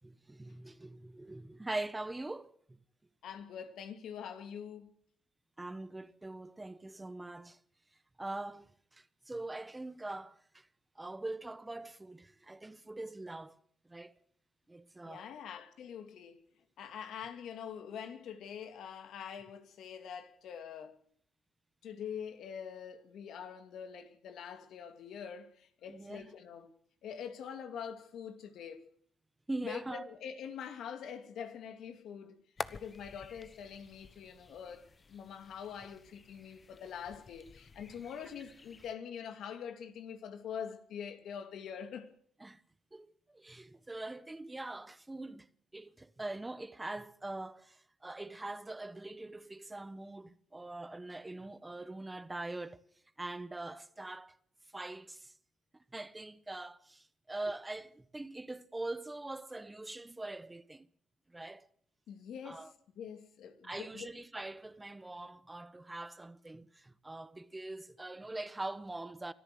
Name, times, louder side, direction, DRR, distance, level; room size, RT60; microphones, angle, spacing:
voice 1, 0.0-2.5 5.6-7.6 8.2-8.7 8.9-10.7 11.0-13.5 13.9-14.1 14.7-15.3 25.9-26.3 29.5-30.1 42.4-42.6 42.9-45.5 45.7-52.8 53.2-54.3 54.7-55.3 55.9-60.9 61.3-61.7 62.4-62.7 63.6-69.3, right 2 dB, 15° right, 1.1 m, -43 dB
voice 2, 3.2-4.9 15.0-16.4 16.8-20.9 21.8-26.7 27.0-28.9 29.6-32.4 32.7-42.1 62.1-62.7 63.0-64.1, left 7 dB, 75° left, 2.5 m, -44 dB
sound 1, 32.6-38.9, left 4 dB, 35° left, 1.1 m, -49 dB
25.0 x 14.0 x 7.8 m
cardioid pair, 90°, 0 cm